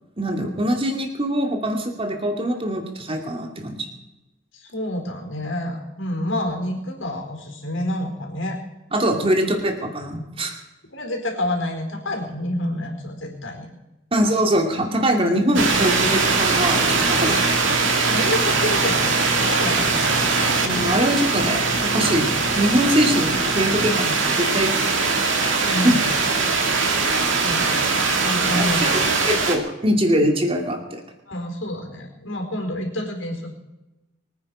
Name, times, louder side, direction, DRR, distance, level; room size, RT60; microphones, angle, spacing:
voice 1, 0.2-3.9 8.9-10.5 14.1-17.6 20.6-22.3 22.6-25.2 25.6-26.0 28.5-29.0 29.3-31.0, equal, 30° right, 3 dB, 2.5 m, -23 dB
voice 2, 4.5-8.6 10.9-13.7 18.1-20.2 25.6-26.0 27.4-27.7 28.1-28.8 29.1-29.2 31.3-33.5, left 1 dB, 80° left, 2 dB, 4.4 m, -28 dB
sound 1, 15.5-29.6, right 4 dB, 75° right, 2.5 m, -21 dB
24.0 x 9.6 x 5.0 m, 1.0 s
head